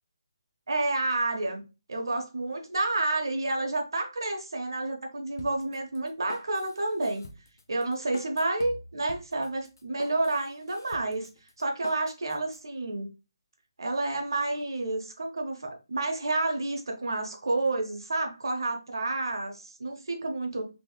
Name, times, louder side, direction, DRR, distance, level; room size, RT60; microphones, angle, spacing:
voice 1, 0.7-1.6 1.9-7.2 7.7-11.3 11.6-13.1 13.8-20.7, right 2 dB, 65° right, 3 dB, 0.9 m, -30 dB
Drum kit, 5.4-12.6, left 3 dB, 50° left, 0.4 m, -47 dB
3.6 x 3.0 x 2.2 m, 0.29 s
hypercardioid pair, 180°, 2 cm